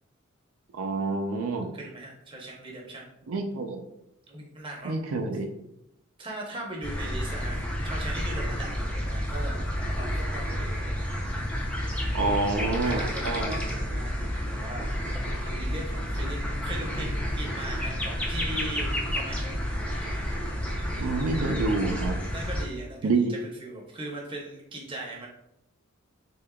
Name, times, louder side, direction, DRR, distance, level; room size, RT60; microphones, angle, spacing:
voice 1, 0.7-1.7 3.3-3.8 4.8-5.5 12.1-13.5 21.0-22.2 23.0-23.3, right 3 dB, 80° right, 4 dB, 0.4 m, -27 dB
voice 2, 1.7-3.1 4.3-5.0 6.2-9.6 9.9-10.9 12.1-14.9 15.4-19.6 22.3-25.3, right 1 dB, 25° right, -1 dB, 0.7 m, -39 dB
sound 1, 6.8-22.6, equal, 5° left, 0.4 m, -30 dB
3.7 x 3.6 x 2.2 m, 0.83 s
head